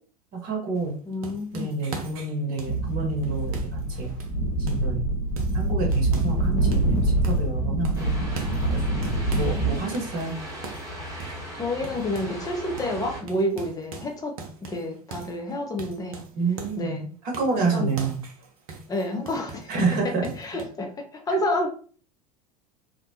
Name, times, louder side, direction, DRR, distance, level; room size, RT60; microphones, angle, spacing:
voice 1, 0.3-0.9 1.5-4.1 4.6-5.0 5.5-8.2 8.6-9.1 9.3-10.4 16.4-18.2 19.7-20.3, right 4 dB, 45° right, 0 dB, 1.0 m, -28 dB
sound 1, 0.7-4.9 5.4-6.4 6.7-7.5 7.8-9.6 9.9-12.5 12.8-13.0 13.3-16.9 17.3-19.8 20.2-20.6, right 3 dB, 60° right, 0.6 m, -41 dB
voice 2, 1.1-1.8 6.2-6.8 9.3-10.1 11.6-14.3 14.6-16.2 16.8-17.1 17.6-17.9 18.9-19.7 20.4-21.7, left 1 dB, 15° left, 2 dB, 0.6 m, -30 dB
sound 2, 2.6-9.7, right 2 dB, 70° left, 0.8 m, -25 dB
sound 3, 7.9-13.2, right 1 dB, 15° right, 1.1 m, -38 dB
2.8 x 2.1 x 2.7 m, 0.43 s
figure-of-eight pair, 80°, 21 cm